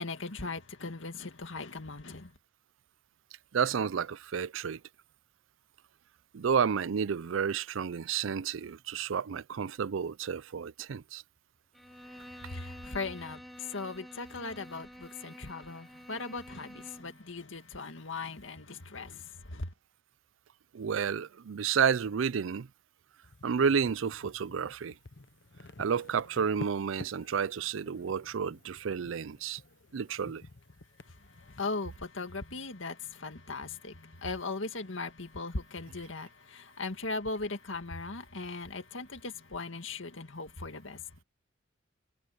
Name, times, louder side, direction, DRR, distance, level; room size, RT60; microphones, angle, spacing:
voice 1, 0.0-2.3 12.0-19.7 31.0-41.0, left 3 dB, 85° left, 2.0 m, -39 dB
voice 2, 3.5-4.8 6.3-11.2 20.7-22.7 23.4-24.9 25.8-29.6 29.9-30.4, right 6 dB, 90° right, 0.5 m, -31 dB
Bowed string instrument, 11.7-17.2, equal, ahead, 4.2 m, -49 dB
sound 1, 23.2-31.6, left 2 dB, 65° left, 0.9 m, -50 dB
head